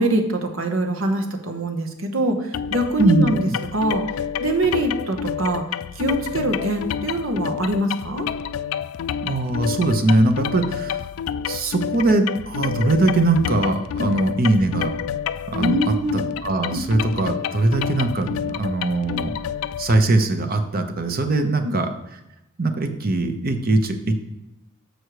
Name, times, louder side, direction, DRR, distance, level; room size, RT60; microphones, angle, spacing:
voice 1, 0.0-4.0 4.4-5.6 5.9-8.3 14.0-14.1 15.6-16.2 16.7-16.8 21.3-21.8, right 1 dB, 80° right, 5 dB, 1.0 m, -24 dB
sound 1, 2.5-20.0, left 8 dB, 90° left, 0.3 m, -29 dB
voice 2, 3.0-3.3 9.2-11.0 11.5-15.0 15.5-15.8 16.1-19.3 19.8-21.9 22.6-24.1, right 2 dB, 45° right, 7 dB, 0.8 m, -21 dB
6.5 x 6.2 x 4.8 m, 0.92 s
head